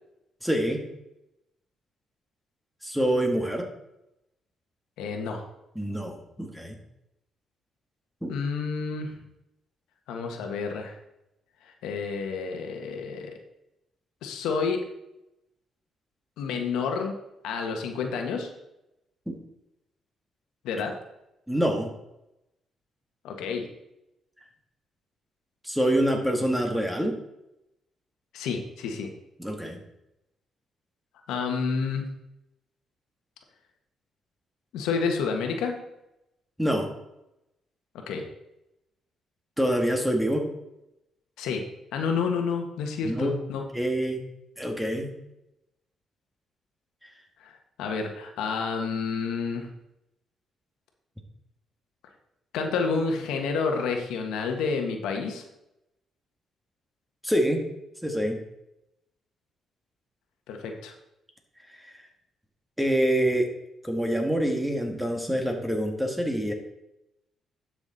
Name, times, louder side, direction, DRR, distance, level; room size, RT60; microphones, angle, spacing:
voice 1, 0.4-0.8 2.8-3.7 5.8-6.8 8.2-8.4 19.3-19.4 21.5-21.9 25.6-27.2 29.4-29.8 36.6-36.9 39.6-40.5 43.0-43.4 43.7-44.2 44.6-45.1 57.2-57.6 58.0-58.4 61.8-62.0 62.8-63.5 63.8-66.5, right 1 dB, 5° right, 3 dB, 1.8 m, -26 dB
voice 2, 5.0-5.5 8.3-9.2 10.1-10.9 11.8-13.3 14.2-14.8 16.4-17.2 17.4-18.5 20.6-20.9 23.2-23.7 28.3-29.1 31.3-32.1 34.7-35.8 38.1-38.2 41.4-41.6 41.9-43.6 47.4-49.7 52.5-55.4 60.5-60.9, left 5 dB, 90° left, 3 dB, 1.4 m, -29 dB
11.0 x 6.1 x 4.1 m, 0.89 s
cardioid pair, 90°, 0 cm